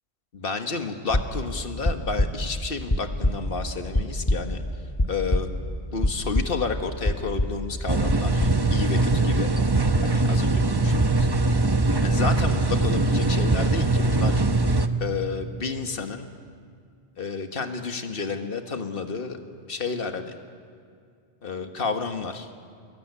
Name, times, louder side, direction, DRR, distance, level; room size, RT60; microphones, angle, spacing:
voice 1, 0.3-4.6 5.1-5.5 5.9-9.5 10.0-11.3 12.0-14.4 15.0-16.3 17.2-19.4 19.7-20.3 21.4-22.5, left 4 dB, 55° left, 6 dB, 1.7 m, -31 dB
sound 1, 1.1-5.7 6.0-6.8 7.0-7.7 8.1-8.7, left 1 dB, 20° left, 1.9 m, -25 dB
sound 2, 7.9-14.9, right 2 dB, 25° right, 0.9 m, -21 dB
25.5 x 22.0 x 9.7 m, 2.2 s
omnidirectional pair, 1.1 m